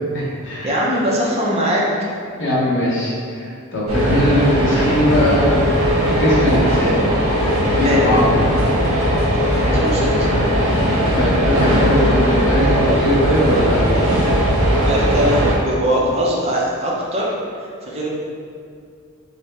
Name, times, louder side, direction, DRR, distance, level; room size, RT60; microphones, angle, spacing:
voice 1, 0.0-0.7 2.4-5.5 5.8-7.0 7.7-8.4 11.1-13.8, left 1 dB, 55° left, -7 dB, 1.0 m, -20 dB
voice 2, 0.6-1.8 7.8-8.0 9.6-10.1 14.8-17.3 17.6-18.1, equal, 30° right, -4 dB, 0.5 m, -21 dB
sound 1, 3.9-15.6, equal, 80° right, 0.8 m, -18 dB
3.2 x 2.7 x 3.2 m, 2.2 s
head